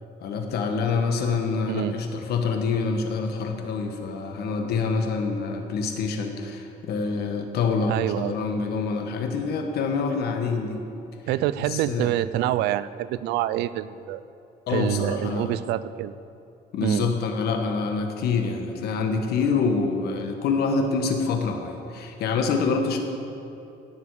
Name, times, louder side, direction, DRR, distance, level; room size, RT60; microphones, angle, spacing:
voice 1, 0.2-10.8 11.6-12.1 14.7-15.5 16.7-23.0, left 4 dB, 70° left, 4 dB, 1.4 m, -26 dB
voice 2, 7.9-8.4 11.3-14.2 14.7-16.1 16.8-17.1, right 13 dB, 85° right, 16 dB, 0.4 m, -26 dB
17.0 x 7.0 x 4.9 m, 2.8 s
cardioid pair, 110°, 17 cm